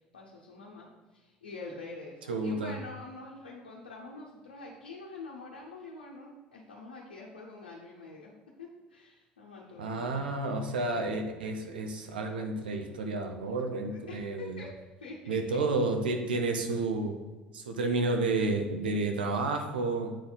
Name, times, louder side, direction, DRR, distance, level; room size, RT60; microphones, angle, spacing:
voice 1, 0.1-10.6 13.9-15.6, left 3 dB, 85° left, -4 dB, 0.8 m, -46 dB
voice 2, 2.3-2.7 9.8-14.6 15.3-17.1 17.5-20.2, right 3 dB, 80° right, 4 dB, 0.8 m, -31 dB
8.2 x 4.3 x 4.0 m, 1.2 s
figure-of-eight pair, 65°, 5 cm